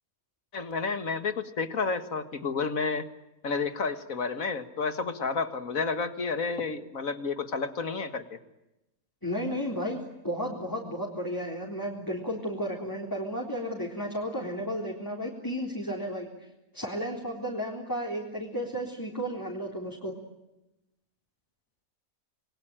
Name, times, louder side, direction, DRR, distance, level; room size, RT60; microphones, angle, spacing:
voice 1, 0.5-3.1 3.4-8.4, left 4 dB, 65° left, 9 dB, 2.2 m, -31 dB
voice 2, 9.2-16.3 16.7-20.1, equal, 15° left, -2 dB, 3.9 m, -33 dB
28.0 x 22.0 x 9.0 m, 0.94 s
omnidirectional pair, 1.5 m